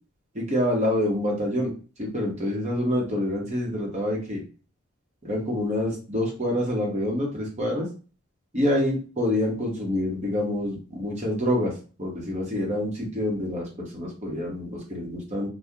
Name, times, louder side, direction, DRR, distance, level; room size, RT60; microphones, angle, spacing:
voice 1, 0.3-1.7 2.0-4.4 5.2-7.9 8.5-11.7 12.0-15.5, left 1 dB, 35° right, -2 dB, 1.1 m, -27 dB
2.8 x 2.4 x 3.6 m, 0.36 s
head